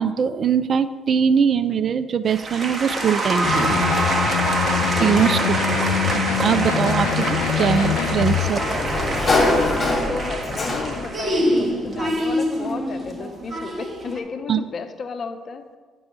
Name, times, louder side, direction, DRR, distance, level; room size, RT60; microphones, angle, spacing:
voice 1, 0.0-4.1 5.0-5.6 6.1-8.6 14.5-14.6, right 7 dB, 50° right, 14 dB, 0.4 m, -22 dB
sound 1, 2.3-14.2, right 1 dB, 35° right, 1.4 m, -25 dB
sound 2, 3.4-8.5, left 9 dB, 75° left, 0.4 m, -24 dB
voice 2, 5.6-6.2 8.5-8.9 9.8-15.7, left 4 dB, 45° left, 8 dB, 0.8 m, -33 dB
Sliding door, 7.3-11.2, left 2 dB, 30° left, 2.2 m, -24 dB
9.8 x 5.4 x 4.6 m, 1.5 s
hypercardioid pair, 50°, 0 cm